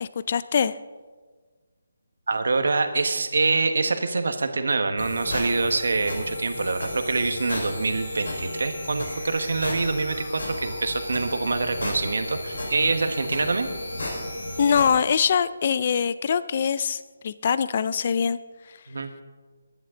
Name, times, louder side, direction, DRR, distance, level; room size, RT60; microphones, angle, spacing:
voice 1, 0.0-0.7 14.6-18.4, left 7 dB, 30° left, 15 dB, 0.4 m, -23 dB
voice 2, 2.3-13.7 18.9-19.1, right 3 dB, 70° right, 8 dB, 1.4 m, -25 dB
sound 1, 5.0-15.0, left 1 dB, 80° left, 4.7 m, -33 dB
22.0 x 11.0 x 3.8 m, 1.4 s
hypercardioid pair, 175°, 0 cm